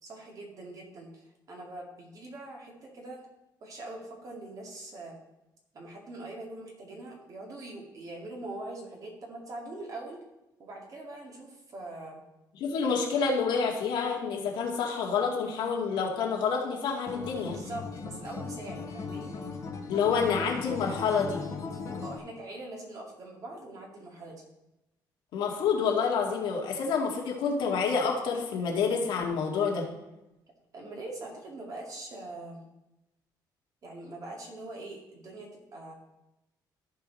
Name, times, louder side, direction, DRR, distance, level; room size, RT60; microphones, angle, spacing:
voice 1, 0.0-3.2 3.6-5.1 5.7-10.2 10.6-12.2 17.5-19.4 22.0-24.4 30.7-32.6 33.8-35.9, right 2 dB, 50° right, -1 dB, 2.4 m, -43 dB
voice 2, 12.6-17.6 19.9-21.4 25.3-29.9, left 5 dB, 80° left, -1 dB, 2.0 m, -28 dB
Acoustic guitar, 17.1-22.2, left 4 dB, 45° left, 1.6 m, -38 dB
14.0 x 4.8 x 4.1 m, 0.94 s
cardioid pair, 125°, 8 cm